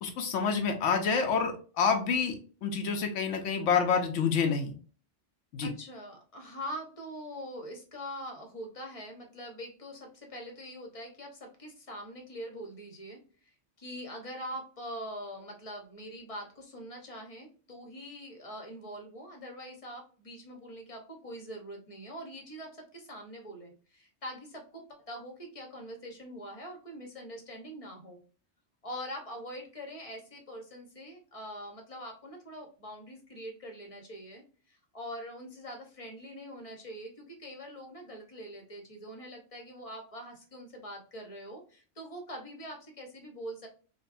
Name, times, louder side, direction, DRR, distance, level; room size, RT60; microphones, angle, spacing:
voice 1, 0.0-4.7 5.5-5.7, left 6 dB, 90° left, 4 dB, 1.0 m, -28 dB
voice 2, 5.6-28.2 28.8-43.7, equal, 35° left, 3 dB, 0.8 m, -43 dB
5.1 x 2.2 x 2.5 m, 0.40 s
omnidirectional pair, 1.2 m